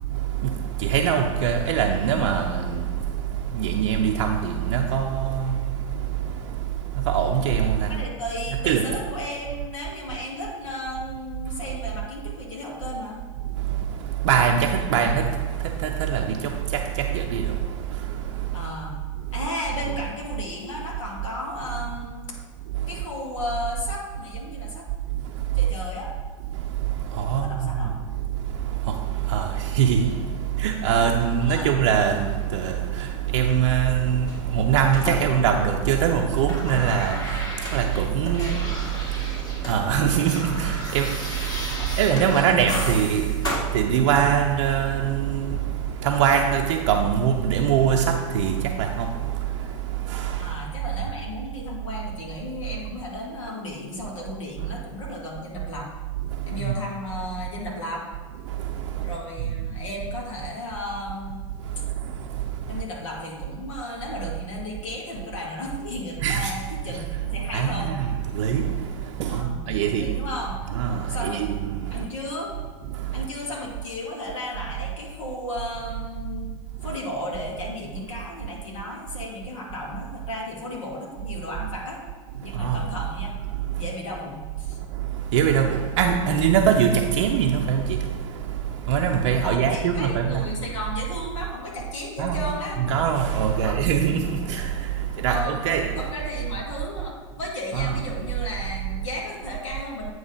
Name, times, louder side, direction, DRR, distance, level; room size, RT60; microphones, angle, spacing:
voice 1, 0.1-8.1 8.6-9.0 11.5-11.6 13.4-18.7 19.2-19.4 19.8-20.0 22.7-23.0 25.1-25.7 26.5-50.6 54.6-54.7 56.3-56.7 58.4-59.7 61.6-62.8 66.2-66.5 66.9-67.0 67.5-70.3 70.7-72.1 72.9-73.3 82.4-82.9 83.5-83.8 84.7-90.5 92.2-92.4 92.8-96.1 97.7-98.0, right 8 dB, 65° right, 0.5 m, -24 dB
voice 2, 7.9-13.2 18.5-19.0 19.3-22.2 22.9-24.9 25.5-26.1 27.3-28.0 31.4-31.8 41.7-41.9 42.3-42.9 50.4-55.9 56.4-58.1 59.0-61.4 62.7-67.9 69.3-70.6 71.1-71.4 71.9-72.5 73.1-76.5 76.8-82.0 82.4-83.3 83.8-84.8 89.4-92.8 93.6-93.9 95.3-95.6 95.9-100.1, left 1 dB, 75° left, 1.7 m, -34 dB
sound 1, 34.3-36.0 36.2-39.8 40.0-44.5 45.5-45.6, equal, 20° left, 2.1 m, -34 dB
sound 2, 38.7-43.1, right 2 dB, 5° right, 1.9 m, -43 dB
8.8 x 3.2 x 5.2 m
hypercardioid pair, 85°, 16 cm